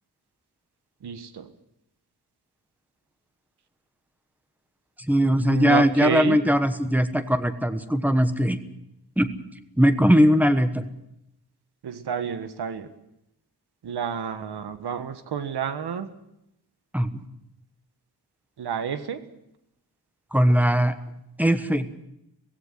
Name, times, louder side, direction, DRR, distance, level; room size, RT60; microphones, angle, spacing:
voice 1, 1.0-1.5 5.4-6.4 11.8-12.9 13.8-16.1 18.6-19.2, right 7 dB, 85° right, 10 dB, 1.6 m, -30 dB
voice 2, 5.1-8.6 9.2-9.3 9.8-10.8 16.9-17.1 20.3-21.0 21.4-21.9, equal, 5° right, 10 dB, 1.2 m, -20 dB
17.5 x 16.5 x 9.8 m, 0.85 s
wide cardioid pair, 140°, 38 cm